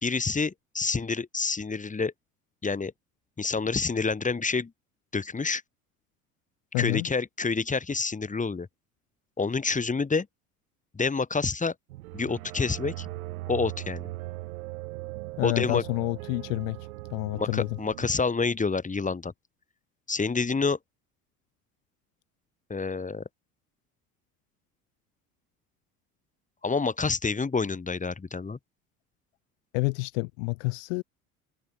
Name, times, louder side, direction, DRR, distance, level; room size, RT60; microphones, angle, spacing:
voice 1, 0.0-2.1 2.6-2.9 3.4-4.7 5.1-5.6 6.8-8.7 9.4-10.3 10.9-11.7 12.1-13.1 13.5-14.1 15.4-15.8 17.3-19.3 20.1-20.8 22.7-23.2 26.6-28.6, left 4 dB, 15° left, 2.8 m, -28 dB
voice 2, 6.7-7.1 15.4-17.8 29.7-31.0, left 30 dB, 55° left, 0.8 m, -29 dB
sound 1, 11.9-18.2, right 18 dB, 65° right, 3.2 m, -39 dB
figure-of-eight pair, 65°, 45 cm